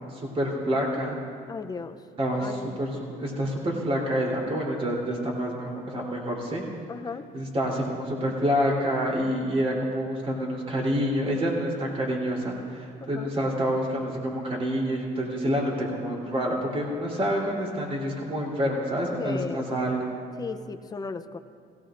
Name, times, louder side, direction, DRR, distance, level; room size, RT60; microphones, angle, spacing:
voice 1, 0.1-1.2 2.2-6.6 7.3-20.1, equal, 35° right, -3 dB, 3.4 m, -27 dB
voice 2, 1.5-2.0 2.4-2.8 6.9-7.3 13.0-13.3 19.2-19.7 20.4-21.4, left 5 dB, 25° left, 9 dB, 0.6 m, -35 dB
17.5 x 17.0 x 2.6 m, 2.3 s
cardioid pair, 110°, 17 cm